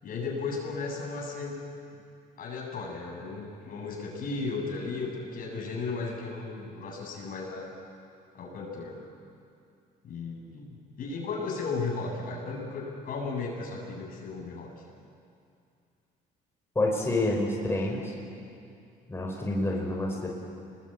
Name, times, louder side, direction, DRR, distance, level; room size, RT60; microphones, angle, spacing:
voice 1, 0.0-1.6 1.9-2.0 2.4-7.7 8.3-9.0 10.0-14.7 19.6-19.8, left 4 dB, 55° left, 0 dB, 7.2 m, -35 dB
voice 2, 16.7-18.1 19.1-20.3, left 2 dB, 15° left, -2 dB, 5.0 m, -28 dB
26.5 x 21.0 x 9.0 m, 2.5 s
cardioid pair, 110°, 17 cm